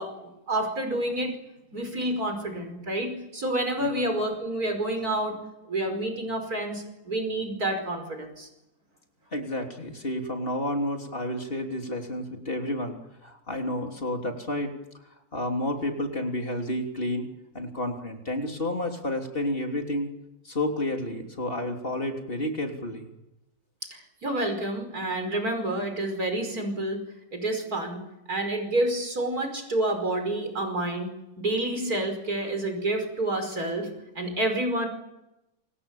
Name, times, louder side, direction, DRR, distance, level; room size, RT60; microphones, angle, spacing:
voice 1, 0.0-1.4 1.7-5.4 5.7-8.5 23.9-27.0 27.3-28.0 28.3-33.9 34.2-34.9, right 1 dB, 70° right, 5 dB, 5.7 m, -29 dB
voice 2, 9.3-14.7 15.3-17.3 17.5-20.1 20.5-23.1, left 1 dB, 35° left, 3 dB, 3.5 m, -30 dB
28.0 x 25.5 x 7.3 m, 0.92 s
omnidirectional pair, 1.6 m